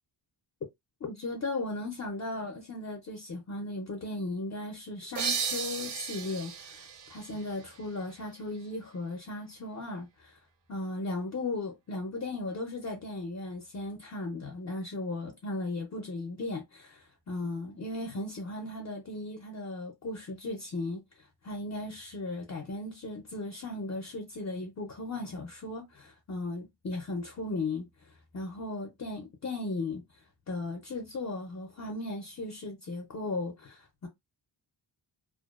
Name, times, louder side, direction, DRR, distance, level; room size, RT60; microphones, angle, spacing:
voice 1, 1.0-10.4 10.7-27.9 28.3-30.0 30.5-34.1, left 2 dB, 40° left, 0.5 m, -36 dB
sound 1, 5.2-8.6, right 6 dB, 65° right, 0.7 m, -36 dB
2.5 x 2.1 x 2.3 m
wide cardioid pair, 160°, 44 cm